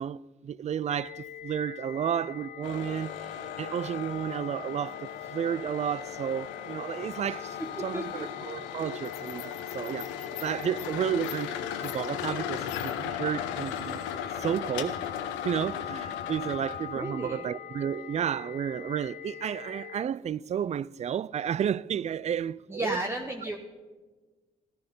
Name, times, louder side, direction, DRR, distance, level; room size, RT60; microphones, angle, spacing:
voice 1, 0.0-3.2 3.6-14.0 14.4-15.0 15.4-23.0, right 9 dB, 35° right, 0.4 m, -32 dB
sound 1, 0.9-20.0, left 10 dB, 50° left, 0.7 m, -42 dB
sound 2, 2.6-17.0, left 9 dB, 85° left, 0.9 m, -37 dB
voice 2, 7.6-8.2 16.9-17.5 22.7-23.6, right 1 dB, 15° right, 1.1 m, -34 dB
13.5 x 12.0 x 5.3 m
hypercardioid pair, 50°, 19 cm